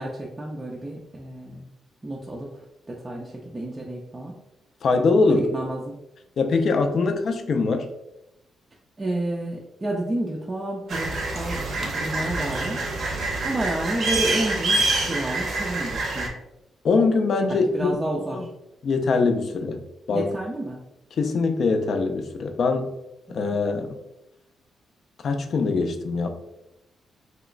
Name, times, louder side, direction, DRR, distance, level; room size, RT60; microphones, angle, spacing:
voice 1, 0.0-1.7 2.0-4.3 5.2-6.0 7.0-7.1 9.0-12.8 13.4-16.3 17.5-18.5 20.1-20.8 23.3-23.4, right 1 dB, 20° right, -2 dB, 0.4 m, -30 dB
voice 2, 4.8-5.4 6.4-7.9 16.8-17.9 18.3-18.4 18.8-19.8 20.1-20.3 21.1-22.9 23.3-24.0 25.2-26.3, left 4 dB, 50° left, 6 dB, 0.3 m, -22 dB
sound 1, 10.9-16.3, right 2 dB, 55° right, 0.7 m, -26 dB
3.0 x 2.9 x 2.4 m, 0.90 s
cardioid pair, 140°, 0 cm